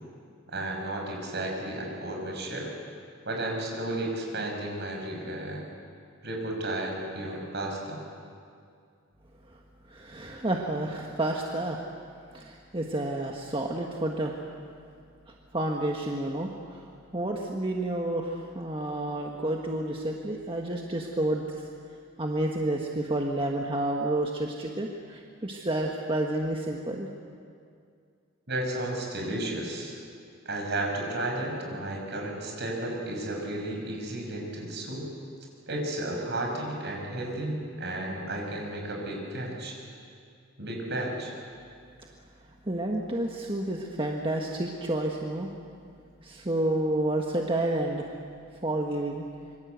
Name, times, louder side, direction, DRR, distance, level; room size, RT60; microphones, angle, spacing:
voice 1, 0.5-2.7 3.2-5.6 6.2-8.0 28.5-30.0 30.4-35.0 35.7-39.8 40.6-41.3, right 1 dB, 55° right, 1 dB, 6.0 m, -33 dB
voice 2, 9.9-11.9 12.3-14.3 15.3-16.8 17.1-21.7 22.2-27.1 42.6-45.5 46.2-48.1 48.6-49.2, right 1 dB, 25° right, 0 dB, 1.5 m, -30 dB
26.0 x 23.5 x 8.2 m, 2.3 s
head